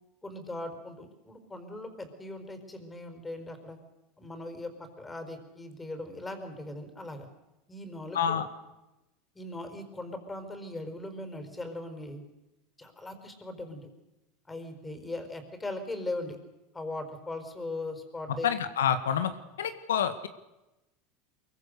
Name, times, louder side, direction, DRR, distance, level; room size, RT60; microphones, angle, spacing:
voice 1, 0.2-3.8 4.2-7.3 7.7-8.5 9.3-12.2 12.8-13.9 14.5-16.4 16.7-18.5, left 2 dB, 15° left, 7 dB, 4.8 m, -39 dB
voice 2, 8.1-8.5 18.3-19.3 19.6-20.3, left 8 dB, 90° left, 10 dB, 1.5 m, -28 dB
23.5 x 23.0 x 6.7 m, 0.98 s
hypercardioid pair, 95°, 0 cm